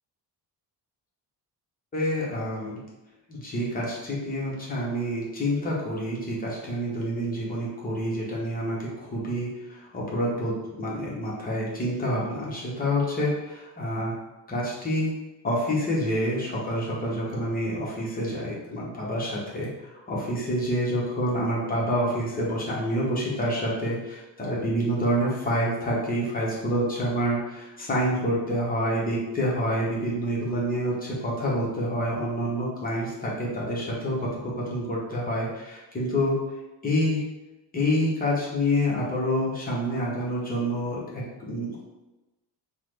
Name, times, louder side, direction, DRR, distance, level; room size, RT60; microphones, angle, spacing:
voice 1, 1.9-2.8 3.3-14.1 14.5-15.1 15.4-36.4 36.8-37.2 37.7-41.8, equal, 20° left, -5 dB, 0.7 m, -27 dB
3.6 x 2.0 x 3.1 m, 1.0 s
cardioid pair, 175°, 42 cm